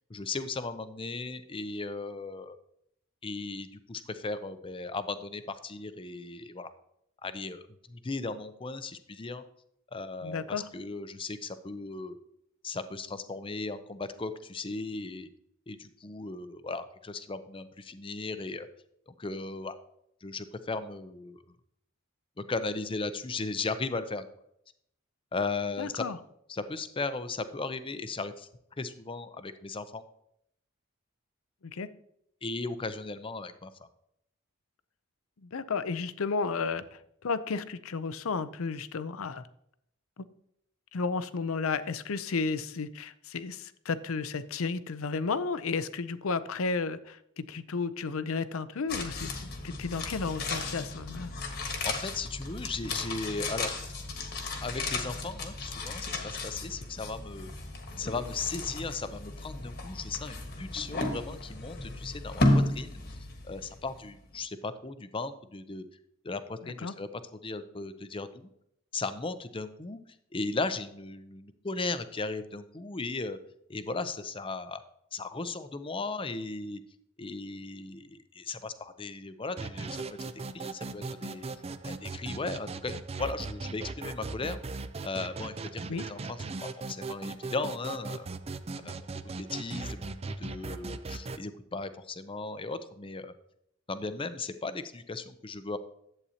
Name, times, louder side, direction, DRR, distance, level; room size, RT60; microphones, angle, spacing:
voice 1, 0.1-2.6 3.2-6.7 7.2-7.6 7.9-9.4 9.9-10.4 10.7-12.2 12.6-15.3 15.7-18.7 19.1-19.8 20.2-21.4 22.5-24.2 25.3-26.0 26.5-28.5 28.8-30.0 32.4-33.7 51.8-53.7 54.6-57.5 58.0-63.2 63.4-65.8 66.2-67.1 67.4-68.5 68.9-70.0 70.3-73.4 73.7-74.8 75.1-76.8 77.2-81.4 81.8-84.6 85.0-86.4 86.9-88.3 88.8-89.0 89.4-93.3 93.9-95.8, left 3 dB, 25° left, 11 dB, 0.6 m, -36 dB
voice 2, 10.2-10.6 25.8-26.2 31.6-31.9 35.4-39.4 40.2-40.3 40.9-51.3 66.6-66.9 85.9-86.1, left 4 dB, 80° left, 14 dB, 0.6 m, -33 dB
sound 1, 48.9-64.1 64.3-64.4, left 2 dB, 50° left, 1.4 m, -34 dB
sound 2, 79.6-91.4, right 3 dB, 30° right, 0.4 m, -39 dB
11.0 x 8.3 x 2.9 m, 0.74 s
head